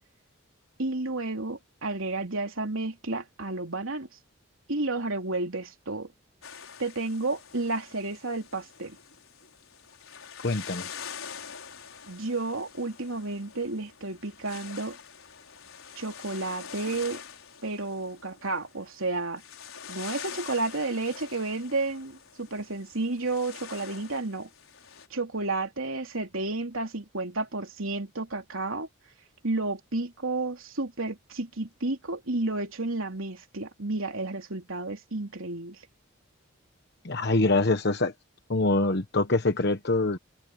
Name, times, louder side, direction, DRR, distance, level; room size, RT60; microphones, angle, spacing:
voice 1, 0.8-4.1 4.7-6.1 6.8-9.0 12.1-15.0 16.0-17.2 17.6-19.4 19.9-24.5 25.1-28.9 29.4-35.8, right 2 dB, 75° right, 3.3 m, -31 dB
sound 1, 6.4-25.1, left 7 dB, 80° left, 5.2 m, -45 dB
voice 2, 10.4-10.9 37.0-38.1 38.5-40.2, left 2 dB, 50° left, 1.1 m, -24 dB
open air
head